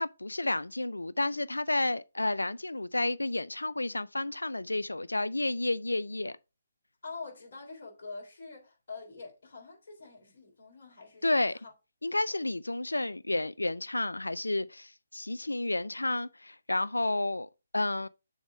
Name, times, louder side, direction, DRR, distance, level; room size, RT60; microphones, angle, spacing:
voice 1, 0.0-6.4 11.2-11.5 12.0-18.1, left 2 dB, 85° left, 0.3 m, -31 dB
voice 2, 7.0-11.7 12.3-12.4, left 4 dB, 55° left, 3.2 m, -45 dB
7.1 x 3.5 x 4.8 m
figure-of-eight pair, 140°, 0 cm